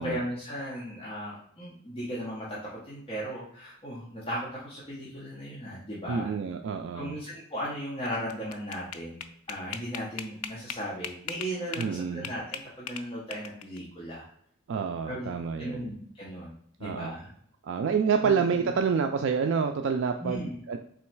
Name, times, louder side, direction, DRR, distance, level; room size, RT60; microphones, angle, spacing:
voice 1, 0.0-6.3 6.9-14.3 15.1-16.5 16.8-17.3 18.2-18.7 20.2-20.6, equal, 25° left, -7 dB, 0.9 m, -37 dB
voice 2, 6.1-7.2 11.8-12.3 14.7-15.9 16.8-17.1 17.6-20.8, right 6 dB, 60° right, 5 dB, 0.3 m, -28 dB
sound 1, 8.1-11.9 12.2-13.8, left 8 dB, 85° left, 0.4 m, -38 dB
3.8 x 3.1 x 4.5 m, 0.66 s
head